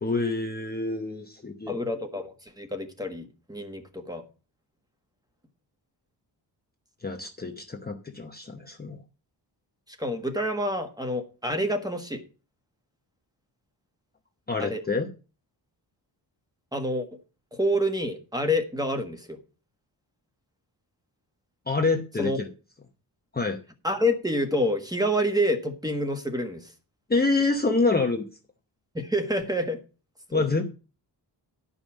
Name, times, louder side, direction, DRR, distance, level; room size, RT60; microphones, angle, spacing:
voice 1, 0.0-1.8 7.0-9.0 14.5-15.1 21.7-22.5 23.3-23.6 27.1-28.2 30.3-30.6, left 3 dB, 20° left, 3 dB, 0.9 m, -26 dB
voice 2, 1.7-4.3 9.9-12.2 14.6-14.8 16.7-17.1 17.5-19.4 22.2-22.4 23.8-26.7 28.9-29.8 30.3-30.5, equal, 10° right, 6 dB, 1.4 m, -28 dB
11.0 x 5.4 x 7.3 m, 0.34 s
wide cardioid pair, 155°, 44 cm